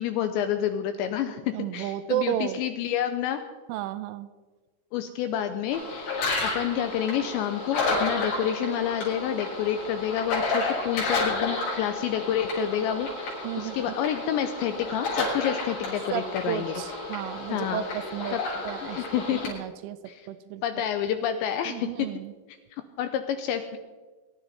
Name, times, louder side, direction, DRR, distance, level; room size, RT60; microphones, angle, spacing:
voice 1, 0.0-3.4 4.9-6.1 6.4-16.8 17.5-17.8 18.3-18.4 18.9-19.4 20.1-20.3 20.6-22.1 23.0-23.8, left 9 dB, 80° left, 8 dB, 2.6 m, -29 dB
voice 2, 1.5-2.6 3.7-4.3 13.4-13.9 16.1-18.4 18.6-19.0 19.5-20.0 20.3-20.8 21.7-22.3, right 12 dB, 85° right, 12 dB, 3.1 m, -32 dB
sound 1, 5.7-19.5, left 3 dB, 65° left, 6.7 m, -31 dB
22.5 x 11.5 x 4.2 m, 1.3 s
omnidirectional pair, 5.8 m